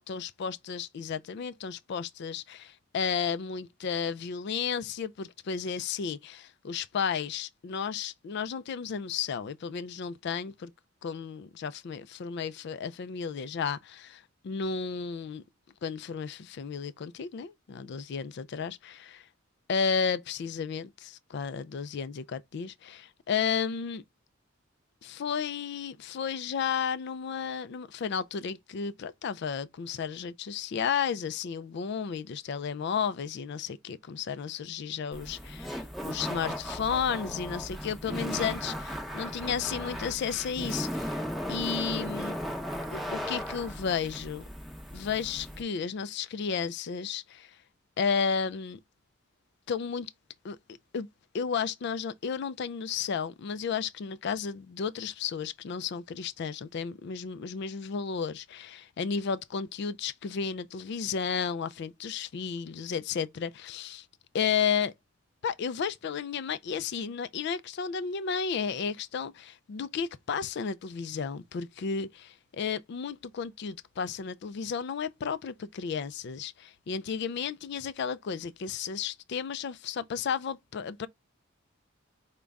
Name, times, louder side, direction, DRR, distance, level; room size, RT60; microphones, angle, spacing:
voice 1, 0.0-10.7 11.0-15.4 15.8-19.2 19.7-24.0 25.0-41.2 41.5-42.4 42.9-44.4 44.9-47.5 48.0-48.8 49.7-50.1 50.4-50.6 50.9-51.1 51.3-64.1 64.3-64.9 65.4-81.1, left 6 dB, 55° left, 0.3 m, -33 dB
Laughter, 35.1-45.6, equal, ahead, 0.7 m, -36 dB
5.1 x 2.2 x 3.4 m
head